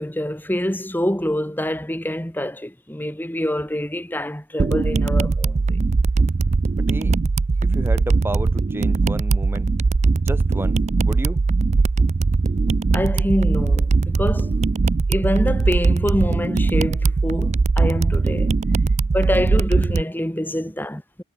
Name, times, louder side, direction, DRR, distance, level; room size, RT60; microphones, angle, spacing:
voice 1, 0.0-5.8 12.9-14.5 15.1-18.6 19.1-21.2, equal, 10° left, 2.3 m, -25 dB
sound 1, 4.6-20.0, right 3 dB, 35° right, 0.4 m, -20 dB
voice 2, 6.8-7.2 7.6-9.7 10.1-11.4 18.7-19.0, right 1 dB, 10° right, 1.0 m, -32 dB
head